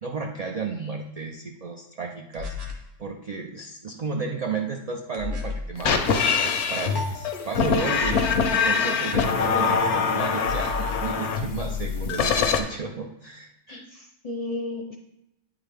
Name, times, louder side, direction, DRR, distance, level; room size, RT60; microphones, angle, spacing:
voice 1, 0.0-2.5 3.0-8.2 8.5-13.8, right 4 dB, 75° right, 2 dB, 0.3 m, -33 dB
sound 1, 2.3-2.9 5.1-5.7 7.9-8.6 10.4-11.1, left 4 dB, 50° right, 1.2 m, -33 dB
sound 2, 5.8-12.6, left 5 dB, 70° left, 0.9 m, -24 dB
voice 2, 13.7-15.0, left 2 dB, 40° left, 2 dB, 0.5 m, -33 dB
8.8 x 3.9 x 3.4 m, 0.86 s
omnidirectional pair, 1.3 m